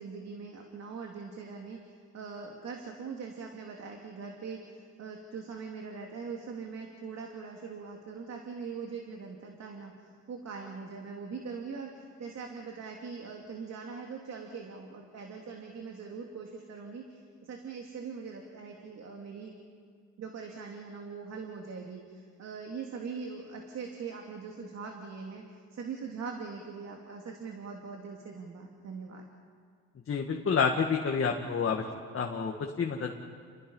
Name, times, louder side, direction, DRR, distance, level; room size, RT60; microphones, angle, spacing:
voice 1, 0.0-9.9 10.3-19.5 20.2-25.4 25.7-29.3, right 5 dB, 60° right, 1 dB, 2.9 m, -42 dB
voice 2, 30.1-31.9 32.1-33.2, left 5 dB, 45° left, 1 dB, 2.1 m, -29 dB
30.0 x 21.5 x 5.7 m, 2.2 s
cardioid pair, 90°, 30 cm